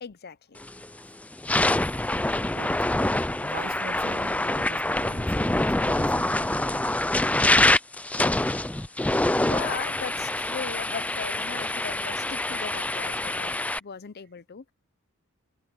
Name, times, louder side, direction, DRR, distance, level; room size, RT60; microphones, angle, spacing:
voice 1, 0.0-0.6 8.2-8.4 9.4-14.7, left 6 dB, 50° left, 0.6 m, -38 dB
sound 1, 0.6-0.9 1.3-13.8, left 1 dB, 5° left, 0.4 m, -25 dB
voice 2, 2.3-2.9 3.4-7.2 8.9-9.0, right 3 dB, 45° right, 0.8 m, -42 dB
head